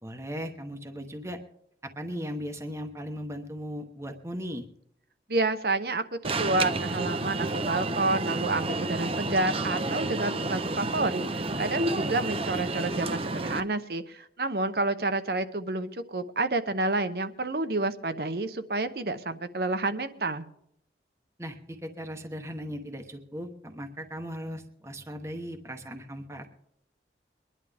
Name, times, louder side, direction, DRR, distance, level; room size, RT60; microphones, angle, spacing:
voice 1, 0.0-1.4 2.0-4.7 21.4-26.5, equal, 15° right, 4 dB, 1.0 m, -37 dB
voice 2, 5.3-20.4, right 2 dB, 60° right, 10 dB, 0.9 m, -29 dB
Alarm, 6.2-13.6, right 2 dB, 35° right, 0.7 m, -30 dB
23.0 x 11.0 x 3.5 m, 0.73 s
head